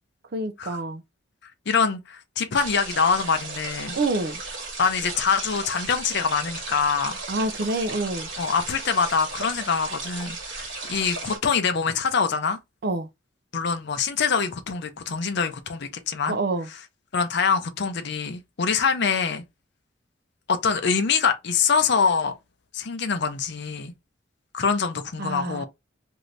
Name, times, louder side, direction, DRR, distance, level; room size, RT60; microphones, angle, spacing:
voice 1, 0.3-1.0 3.9-4.4 7.3-8.3 12.8-13.1 16.3-16.7 25.2-25.7, right 2 dB, 55° right, 0.5 m, -27 dB
voice 2, 1.7-4.0 4.8-7.2 8.4-12.6 13.5-16.4 17.1-19.4 20.5-22.3 22.7-23.9 24.5-25.7, left 5 dB, 60° left, 0.6 m, -24 dB
sound 1, 2.5-11.4, right 3 dB, 75° right, 1.2 m, -35 dB
2.7 x 2.6 x 3.2 m
head